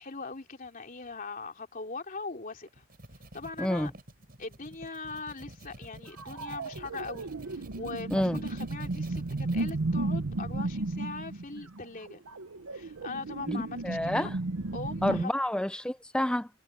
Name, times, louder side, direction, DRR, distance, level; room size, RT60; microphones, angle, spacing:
voice 1, 0.0-2.8 3.3-3.9 4.4-12.2 12.7-14.3 14.7-15.3, left 3 dB, 40° left, 3.4 m, -41 dB
sound 1, 2.7-9.7, right 1 dB, 45° right, 7.2 m, -49 dB
voice 2, 3.6-3.9 8.1-8.4 13.5-14.3 15.0-16.5, left 1 dB, 5° left, 0.6 m, -29 dB
sound 2, 6.2-15.2, right 2 dB, 75° right, 0.9 m, -34 dB
head